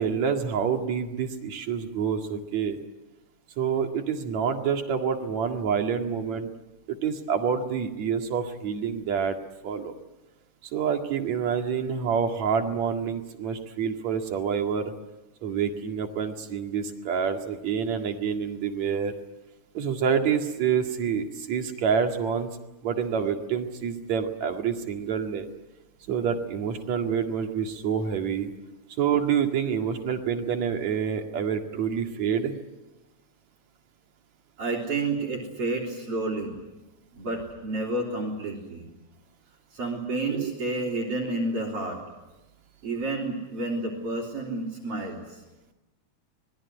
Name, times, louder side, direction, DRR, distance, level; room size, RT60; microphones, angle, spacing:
voice 1, 0.0-2.8 3.6-6.5 6.9-9.4 9.6-9.9 10.7-14.9 15.4-19.1 19.7-22.5 22.8-25.5 26.1-28.5 29.0-32.6 40.3-40.5, right 7 dB, 65° right, 4 dB, 3.3 m, -27 dB
voice 2, 34.6-36.6 37.1-38.9 39.7-42.0 42.8-45.4, right 2 dB, 45° right, -3 dB, 4.6 m, -30 dB
26.0 x 21.0 x 9.8 m, 1.0 s
omnidirectional pair, 3.5 m